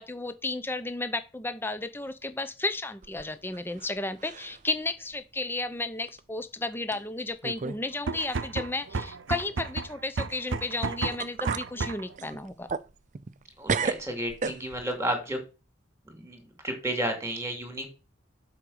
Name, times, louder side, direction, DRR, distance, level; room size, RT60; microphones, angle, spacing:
voice 1, 0.0-12.7, left 2 dB, 10° left, 0.6 m, -33 dB
sound 1, 3.0-3.9 4.2-4.7 5.1-5.2 6.1-6.2 6.9-7.0 7.4-7.8 8.1-8.2 10.7-10.8 11.2-11.7 12.2-13.4 13.7-15.0, right 5 dB, 40° right, 0.4 m, -33 dB
sound 2, 7.9-12.2, right 4 dB, 70° right, 0.7 m, -33 dB
voice 2, 13.6-15.4 16.2-17.9, right 1 dB, 15° right, 2.7 m, -32 dB
7.4 x 5.0 x 6.5 m
head